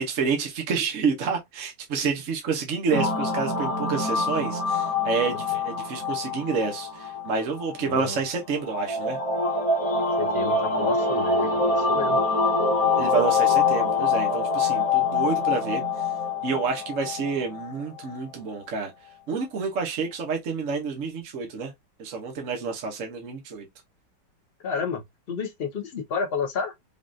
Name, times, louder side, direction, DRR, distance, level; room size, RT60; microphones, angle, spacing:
voice 1, 0.0-9.2 13.0-16.1 16.4-18.9 19.3-21.7 22.0-23.6, right 5 dB, 50° right, 1.0 m, -29 dB
sound 1, 2.9-18.2, left 4 dB, 20° left, 1.0 m, -25 dB
voice 2, 7.8-8.2 10.2-12.2 24.6-25.0 25.3-26.7, left 5 dB, 65° left, 0.6 m, -30 dB
5.3 x 2.4 x 2.5 m
omnidirectional pair, 2.1 m